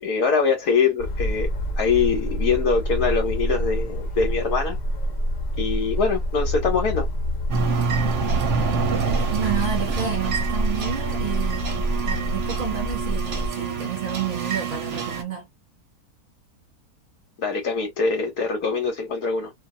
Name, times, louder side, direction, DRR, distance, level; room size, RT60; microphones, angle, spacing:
voice 1, 0.0-1.5 1.8-4.8 5.6-7.1 17.4-19.5, left 5 dB, 70° left, 1.4 m, -23 dB
sound 1, 1.0-13.5, equal, 55° left, 0.5 m, -27 dB
sound 2, 7.5-15.2, right 5 dB, 60° right, 0.9 m, -27 dB
voice 2, 9.3-15.5, right 8 dB, 40° right, 1.0 m, -30 dB
2.7 x 2.6 x 2.6 m
omnidirectional pair, 1.7 m